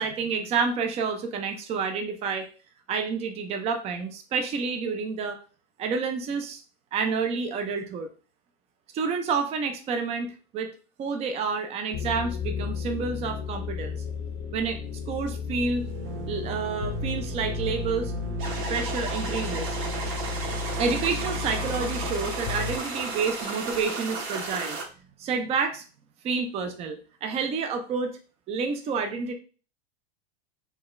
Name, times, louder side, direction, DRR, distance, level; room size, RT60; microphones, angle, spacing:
voice 1, 0.0-2.5 2.9-5.4 5.8-6.6 6.9-8.1 8.9-14.0 14.5-14.8 15.1-15.9 16.3-18.1 18.7-19.8 20.8-24.8 25.2-25.8 26.2-28.2 28.5-29.3, right 5 dB, 20° right, 6 dB, 0.4 m, -29 dB
sound 1, 11.9-22.8, left 6 dB, 35° left, 0.5 m, -33 dB
sound 2, 12.7-13.2 13.5-13.6 13.9-24.5, right 8 dB, 85° right, 0.6 m, -41 dB
sound 3, 18.4-24.8, right 3 dB, 50° right, 1.7 m, -34 dB
4.4 x 2.3 x 3.1 m, 0.36 s
supercardioid pair, 140°, 33 cm